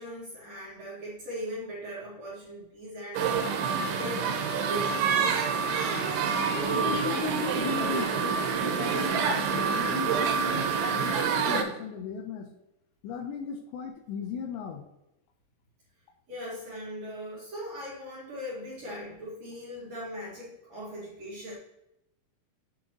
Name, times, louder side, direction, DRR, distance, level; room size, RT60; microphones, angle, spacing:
voice 1, 0.0-3.4 3.8-5.1 13.4-13.5 16.3-21.5, equal, 45° right, -6 dB, 2.7 m, -39 dB
sound 1, 3.2-11.6, right 6 dB, 85° right, 3.2 m, -27 dB
voice 2, 6.6-12.5 13.0-14.9, left 7 dB, 80° left, 5 dB, 2.9 m, -37 dB
8.0 x 6.3 x 3.0 m, 0.85 s
omnidirectional pair, 5.1 m